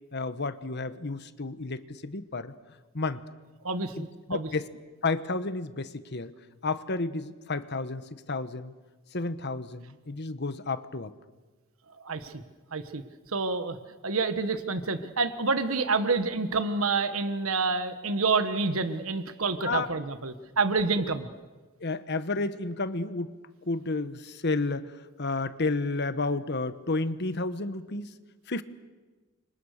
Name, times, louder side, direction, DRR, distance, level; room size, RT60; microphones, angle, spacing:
voice 1, 0.1-2.5 2.9-3.2 4.0-4.7 5.0-6.3 6.6-8.7 9.1-11.1 19.6-19.9 21.8-23.3 23.7-28.1 28.5-28.6, left 3 dB, 55° left, 12 dB, 1.2 m, -31 dB
voice 2, 3.6-4.5 12.0-12.4 12.7-13.0 13.3-13.8 14.0-21.3, right 4 dB, 80° right, 10 dB, 1.4 m, -28 dB
29.5 x 26.0 x 6.6 m, 1.3 s
head